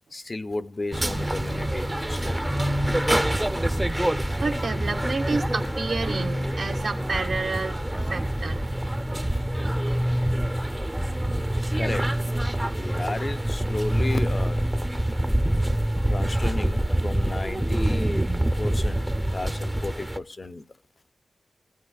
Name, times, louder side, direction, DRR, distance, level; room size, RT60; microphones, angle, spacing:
voice 1, 0.1-2.5 11.7-14.6 16.0-18.3 18.6-20.7, left 2 dB, 40° left, 0.5 m, -34 dB
sound 1, 0.9-20.2, right 1 dB, 15° right, 0.6 m, -26 dB
voice 2, 4.4-7.8 8.0-8.7, right 3 dB, 70° right, 1.5 m, -29 dB
22.5 x 15.0 x 2.3 m
cardioid pair, 55°, 0 cm